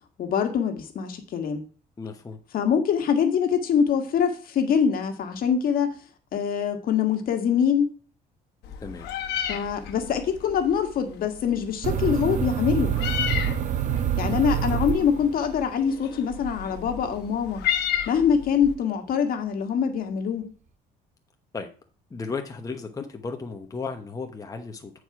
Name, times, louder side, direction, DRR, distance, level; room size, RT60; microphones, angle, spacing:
voice 1, 0.2-1.6 2.5-5.9 6.3-7.9 9.5-13.0 14.2-17.6 18.1-20.5, left 7 dB, 60° left, 5 dB, 1.6 m, -24 dB
voice 2, 2.0-2.4 8.8-9.1 21.5-21.7 22.1-24.9, left 4 dB, 20° left, 4 dB, 1.0 m, -34 dB
Meow, 8.6-18.7, left 9 dB, 75° left, 1.3 m, -33 dB
sound 1, 11.8-15.6, right 9 dB, 45° right, 0.6 m, -26 dB
9.2 x 4.8 x 4.8 m, 0.39 s
cardioid pair, 110°, 17 cm